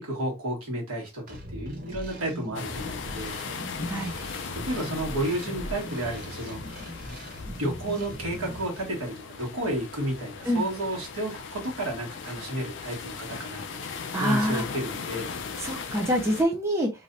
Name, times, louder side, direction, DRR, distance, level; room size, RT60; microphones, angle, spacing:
voice 1, 0.0-3.4 4.0-4.2 4.5-7.2 7.6-13.8 14.2-15.3, right 1 dB, 90° right, 1.5 m, -32 dB
sound 1, 1.3-8.6, equal, 40° right, 0.9 m, -39 dB
sound 2, 2.5-16.4, left 5 dB, 55° left, 0.4 m, -38 dB
voice 2, 14.1-14.6 15.6-16.9, equal, 15° right, 0.5 m, -25 dB
3.2 x 2.6 x 2.6 m
head